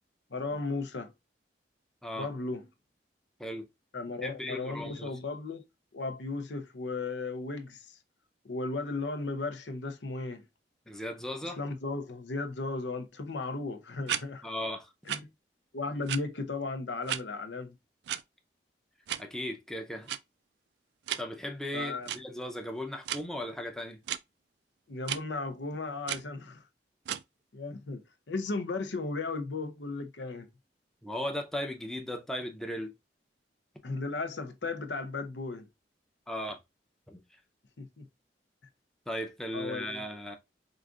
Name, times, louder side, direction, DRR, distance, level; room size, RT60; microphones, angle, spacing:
voice 1, 0.3-1.1 2.2-2.6 3.9-5.6 5.9-8.0 8.4-10.4 11.6-14.5 15.1-15.3 15.7-17.8 21.7-22.1 24.9-26.6 27.5-30.5 33.8-35.6 37.8-38.1 39.5-40.0, left 3 dB, 85° left, 0.7 m, -35 dB
voice 2, 4.2-5.1 10.9-11.6 14.4-14.9 19.2-20.1 21.2-24.0 31.0-32.9 36.3-36.6 37.1-37.2 39.1-40.4, left 1 dB, 5° left, 0.6 m, -37 dB
sound 1, 14.1-14.2 15.1-15.2 16.1-16.2 17.1-17.2 18.1-18.2 19.1-19.2 20.1-20.2 21.1-21.2 22.0-22.2 23.1-23.2 24.1-24.2 25.1-25.2 26.1-26.2 27.1-27.2, right 11 dB, 70° right, 0.3 m, -33 dB
4.8 x 2.5 x 2.4 m
head